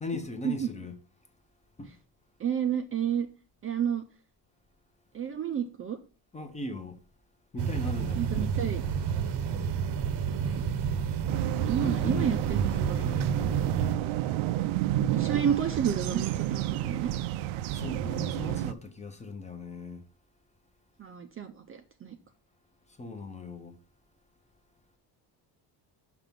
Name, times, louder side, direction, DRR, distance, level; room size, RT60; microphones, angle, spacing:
voice 1, 0.0-1.0 1.8-2.0 6.3-7.0 7.5-8.5 11.8-12.4 12.7-13.3 17.7-20.0 22.9-23.8, left 3 dB, 15° left, 0.6 m, -38 dB
voice 2, 2.4-3.3 3.6-4.0 5.1-6.0 8.2-8.8 10.3-10.6 11.7-13.5 15.1-17.1 21.0-22.2, right 8 dB, 30° right, 0.4 m, -31 dB
sound 1, 7.6-14.0, right 7 dB, 55° right, 0.8 m, -30 dB
sound 2, 11.3-18.7, right 13 dB, 90° right, 0.6 m, -30 dB
6.0 x 5.9 x 5.2 m
cardioid pair, 175°, 47 cm